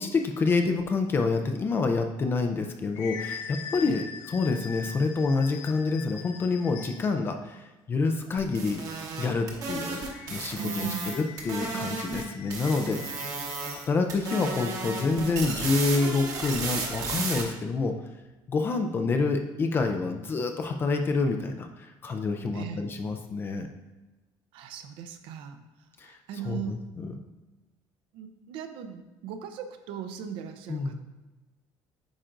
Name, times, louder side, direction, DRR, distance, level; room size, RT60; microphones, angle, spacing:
voice 1, 0.0-8.8 9.2-10.0 10.3-10.9 11.1-13.2 13.7-18.0 18.5-23.7 26.0-26.2 26.5-27.1 30.7-31.0, left 3 dB, 25° left, 5 dB, 0.4 m, -27 dB
sound 1, 2.5-7.2 9.9-13.9, left 6 dB, 90° left, 0.7 m, -43 dB
sound 2, 8.4-12.2 12.5-13.8 14.1-17.4, right 3 dB, 40° right, 1.0 m, -34 dB
voice 2, 10.6-11.2 11.7-12.0 22.5-22.8 24.5-25.6 26.0-26.8 28.1-31.0, right 7 dB, 70° right, 8 dB, 0.6 m, -38 dB
8.8 x 5.1 x 2.5 m, 1.1 s
cardioid pair, 170°, 9 cm